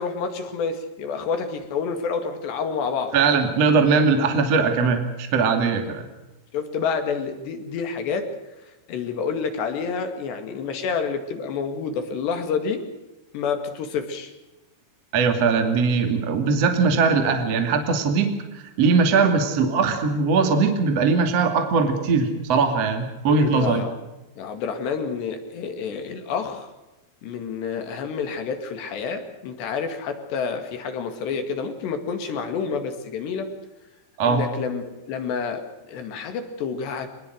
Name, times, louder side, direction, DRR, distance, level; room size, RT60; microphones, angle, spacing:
voice 1, 0.0-3.1 6.5-8.3 8.9-12.8 13.3-14.3 23.3-23.9 24.4-26.7 27.2-33.5 34.2-37.1, left 5 dB, 60° left, 7 dB, 3.9 m, -28 dB
voice 2, 3.1-6.1 15.1-18.3 18.8-23.8 34.2-34.4, right 4 dB, 40° right, 6 dB, 2.8 m, -20 dB
25.5 x 20.5 x 6.5 m, 1.0 s
omnidirectional pair, 5.8 m